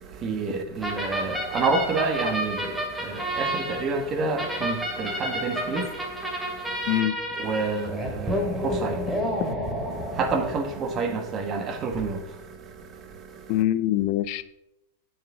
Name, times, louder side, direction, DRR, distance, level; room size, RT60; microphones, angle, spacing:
voice 1, 0.0-7.0 7.4-13.6, right 4 dB, 30° right, 1.6 m, -30 dB
sound 1, 0.8-11.2, equal, 5° right, 2.3 m, -30 dB
voice 2, 6.9-7.2 13.5-14.4, left 13 dB, 55° left, 0.4 m, -24 dB
8.9 x 8.8 x 3.8 m
hypercardioid pair, 110°, 0 cm